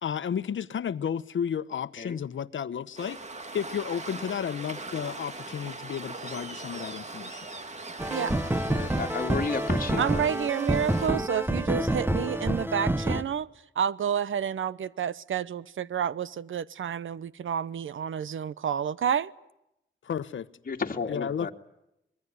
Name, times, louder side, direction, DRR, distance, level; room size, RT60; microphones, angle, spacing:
voice 1, 0.0-3.2 3.5-7.4 20.0-20.5 21.1-21.5, left 8 dB, 75° left, 1.1 m, -32 dB
Waves surf, 3.0-11.1, right 3 dB, 35° right, 2.3 m, -41 dB
sound 1, 8.0-13.2, right 1 dB, 10° right, 1.2 m, -28 dB
voice 2, 8.7-10.3 20.7-21.5, left 4 dB, 45° left, 2.4 m, -32 dB
voice 3, 10.0-13.5 13.7-19.3, right 8 dB, 80° right, 0.9 m, -29 dB
25.5 x 22.0 x 9.5 m
wide cardioid pair, 120°, 20 cm